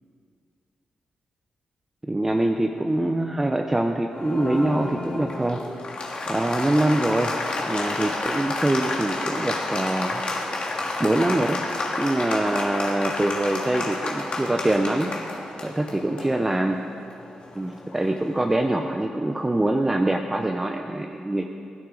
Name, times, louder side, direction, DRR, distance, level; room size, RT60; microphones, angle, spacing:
voice 1, 2.1-5.6 6.3-7.4 7.7-10.4 11.0-11.6 12.0-15.2 15.6-16.8 17.6-21.6, right 1 dB, 15° right, 3 dB, 0.6 m, -24 dB
Applause, 4.1-18.5, left 2 dB, 50° left, 1.7 m, -30 dB
16.0 x 12.5 x 3.8 m, 2.4 s
cardioid pair, 110°, 2 cm